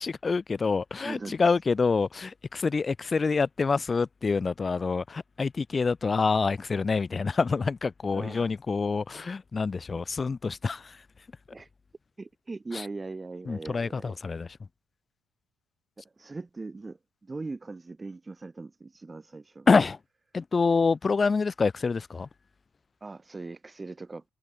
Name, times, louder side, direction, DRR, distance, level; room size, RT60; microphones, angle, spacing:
voice 1, 0.0-10.9 13.5-14.5 19.7-20.0 20.3-22.3, left 4 dB, 35° left, 0.8 m, -26 dB
voice 2, 1.0-1.6 8.1-8.5 9.9-10.0 11.5-11.7 12.2-14.2 16.2-19.7 23.0-24.2, right 3 dB, 25° right, 2.2 m, -40 dB
hypercardioid pair, 55°, 0 cm